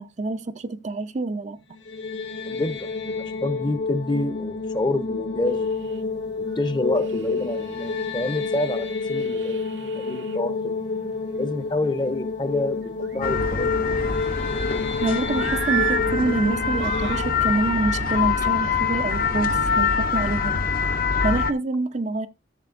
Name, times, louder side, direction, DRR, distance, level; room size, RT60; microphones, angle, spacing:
voice 1, 0.0-1.6 15.0-20.6 21.2-22.3, right 3 dB, 40° right, 0.5 m, -26 dB
sound 1, 1.7-18.8, left 4 dB, 70° left, 1.9 m, -29 dB
voice 2, 2.5-5.7 6.6-9.6 9.9-10.7 11.4-13.9, left 2 dB, 25° left, 0.8 m, -28 dB
sound 2, 5.5-6.0 6.5-6.6 7.0-10.4 12.8-13.6 14.0-14.9 15.3-16.0 16.5-17.2 18.0-18.2, right 10 dB, 85° right, 0.9 m, -34 dB
sound 3, 13.2-21.5, left 5 dB, 55° left, 0.9 m, -24 dB
13.5 x 7.0 x 2.6 m
head